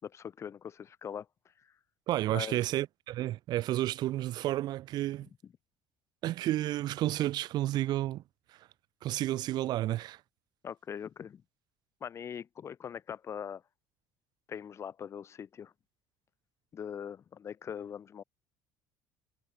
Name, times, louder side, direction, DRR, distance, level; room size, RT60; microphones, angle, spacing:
voice 1, 0.0-1.3 1.6-1.7 2.3-2.6 10.6-11.4 12.0-13.6 14.5-15.7 16.7-18.2, left 8 dB, 30° left, 3.1 m, -41 dB
voice 2, 2.1-5.3 6.2-8.2 9.0-10.2, right 14 dB, 55° right, 1.9 m, -31 dB
cardioid pair, 145°, 9 cm